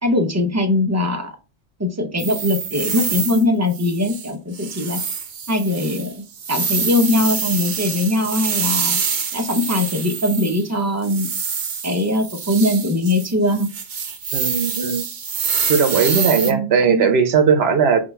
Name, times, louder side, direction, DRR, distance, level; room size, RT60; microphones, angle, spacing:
voice 1, 0.0-1.3 1.8-5.0 5.5-9.0 9.3-11.3 11.8-13.7 16.5-17.1, left 2 dB, 20° right, 5 dB, 0.4 m, -21 dB
sound 1, 2.2-3.4 3.7-4.3 4.5-10.7 11.0-16.5, right 6 dB, 50° right, 0.7 m, -26 dB
voice 2, 14.3-15.0 15.7-18.0, right 6 dB, 70° right, 6 dB, 1.0 m, -17 dB
6.2 x 2.3 x 3.3 m, 0.31 s
omnidirectional pair, 1.1 m